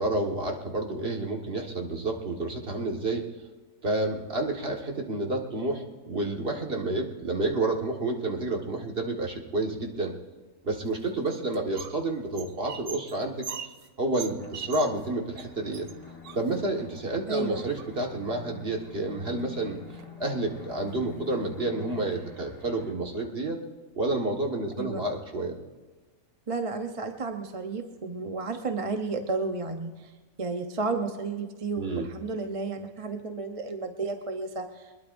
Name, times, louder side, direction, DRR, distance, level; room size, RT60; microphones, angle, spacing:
voice 1, 0.0-3.3 3.8-10.2 10.6-13.5 14.0-15.9 16.3-19.8 20.2-23.6 24.0-25.6 31.8-32.1, right 2 dB, 45° right, 1 dB, 1.9 m, -30 dB
sound 1, 10.9-12.0 12.3-15.1 15.4-15.5 15.7-16.9 17.5-18.2 19.3-19.4 19.7-20.2 20.7-20.9 21.3-21.4 21.9-22.7, right 7 dB, 65° right, 1.1 m, -42 dB
sound 2, 14.4-22.9, left 6 dB, 45° left, 1.8 m, -48 dB
voice 2, 17.3-17.7 24.8-25.0 26.5-30.1 30.4-34.9, right 3 dB, 30° right, 5 dB, 0.8 m, -32 dB
23.0 x 20.5 x 2.6 m, 1.3 s
omnidirectional pair, 1.4 m